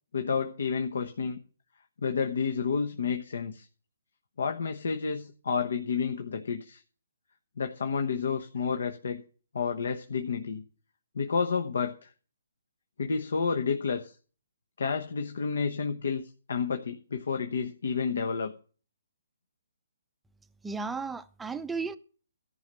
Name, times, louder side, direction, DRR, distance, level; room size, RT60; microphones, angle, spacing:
voice 1, 0.1-1.4 2.0-3.7 4.4-6.8 7.6-9.2 9.5-10.6 11.1-12.1 13.0-14.1 14.8-16.2 16.5-18.5, left 5 dB, 70° left, 1.1 m, -30 dB
voice 2, 20.6-22.0, right 4 dB, 5° right, 0.6 m, -34 dB
14.0 x 5.6 x 7.5 m
hypercardioid pair, 150°, 0 cm